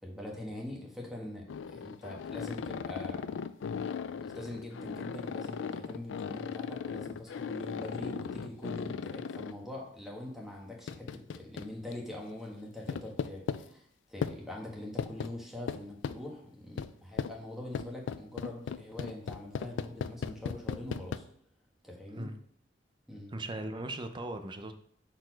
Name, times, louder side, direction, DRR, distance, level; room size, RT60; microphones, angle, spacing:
voice 1, 0.0-3.2 4.1-21.2 21.8-22.3 23.1-23.3, left 1 dB, ahead, -2 dB, 1.3 m, -43 dB
sound 1, 1.5-9.5 10.9-11.9 12.9-13.6 14.2-14.4 15.0-15.3 15.7-16.2 16.8-16.9 17.2-17.3 17.8-21.2, left 6 dB, 80° left, 0.4 m, -37 dB
voice 2, 23.3-24.7, right 2 dB, 25° right, 8 dB, 0.5 m, -38 dB
6.6 x 4.2 x 4.5 m, 0.63 s
head